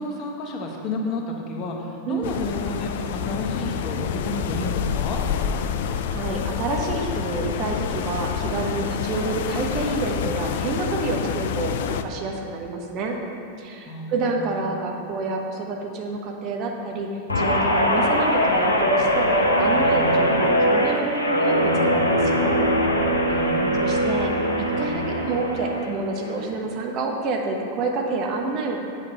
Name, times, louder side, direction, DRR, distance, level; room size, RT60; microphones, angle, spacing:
voice 1, 0.0-5.2 13.9-14.7 23.4-24.2, left 2 dB, 35° left, 0 dB, 1.4 m, -31 dB
sound 1, 2.2-12.0, left 8 dB, 55° left, 0.4 m, -28 dB
voice 2, 5.8-13.2 13.6-22.6 23.8-24.3 24.6-28.8, right 3 dB, 40° right, 1 dB, 1.1 m, -28 dB
Guitar, 17.3-25.9 26.3-26.6, equal, 80° left, 0.9 m, -21 dB
8.5 x 7.3 x 5.6 m, 2.8 s
figure-of-eight pair, 90°, 0 cm